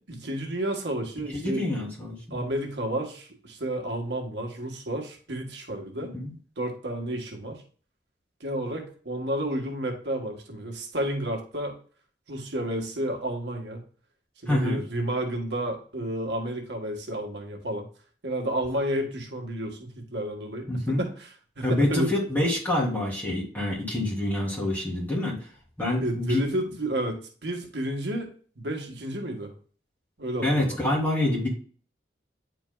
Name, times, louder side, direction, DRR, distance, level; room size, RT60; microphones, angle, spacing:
voice 1, 0.1-1.6 2.3-6.1 6.6-7.6 8.4-11.8 12.3-13.8 14.4-17.9 18.2-21.3 21.6-22.1 26.0-28.3 28.6-29.5 30.2-30.8, right 1 dB, 75° right, 3 dB, 1.4 m, -31 dB
voice 2, 1.3-2.4 6.0-6.3 14.5-14.8 20.7-21.0 21.6-25.4 25.8-26.4 30.4-31.5, left 1 dB, 10° left, -5 dB, 2.8 m, -26 dB
9.5 x 4.5 x 2.2 m, 0.42 s
head